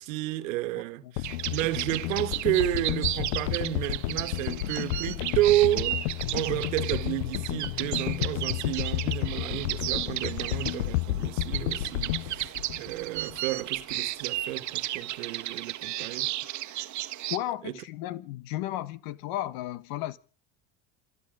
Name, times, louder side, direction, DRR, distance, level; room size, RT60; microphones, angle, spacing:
voice 1, 0.0-16.3 17.6-17.7, right 15 dB, 75° right, 1.6 m, -31 dB
sound 1, 1.2-13.5 13.8-13.9, left 17 dB, 75° left, 0.8 m, -32 dB
sound 2, 1.2-17.4, right 14 dB, 45° right, 1.3 m, -34 dB
voice 2, 17.3-20.2, left 14 dB, 60° left, 1.4 m, -34 dB
26.0 x 10.5 x 5.1 m
hypercardioid pair, 85°, 39 cm